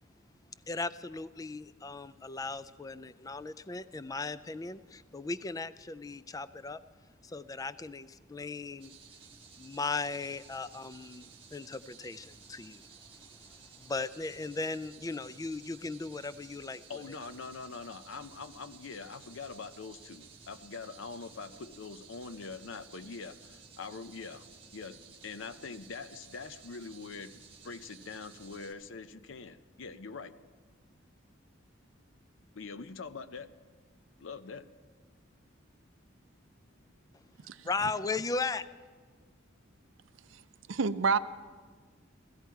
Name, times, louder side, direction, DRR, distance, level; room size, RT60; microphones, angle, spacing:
voice 1, 0.7-6.8 7.2-8.9 9.6-12.9 13.5-16.8 37.6-38.7, left 3 dB, 20° left, 15 dB, 0.3 m, -37 dB
sound 1, 8.8-28.7, right 5 dB, 30° right, 1.3 m, -55 dB
voice 2, 16.9-30.4 32.5-33.5 34.2-34.7, left 4 dB, 70° left, 12 dB, 0.6 m, -44 dB
voice 3, 40.7-41.2, right 5 dB, 75° right, 13 dB, 0.5 m, -28 dB
16.0 x 15.5 x 4.6 m, 1.5 s
head